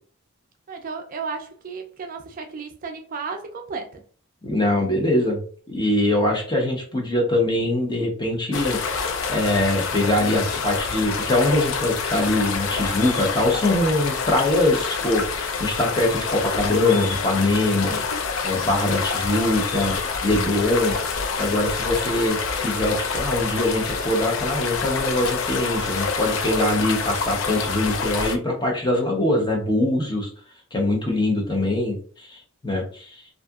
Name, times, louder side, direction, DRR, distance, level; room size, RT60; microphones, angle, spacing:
voice 1, 0.7-4.0, right 5 dB, 40° right, 0.3 m, -33 dB
voice 2, 4.4-5.4 5.7-18.0 18.4-20.0 20.2-20.9 21.4-30.3 30.7-33.2, left 1 dB, 20° left, 0.7 m, -23 dB
sound 1, 8.5-28.4, left 5 dB, 65° left, 0.4 m, -27 dB
2.6 x 2.4 x 2.3 m
head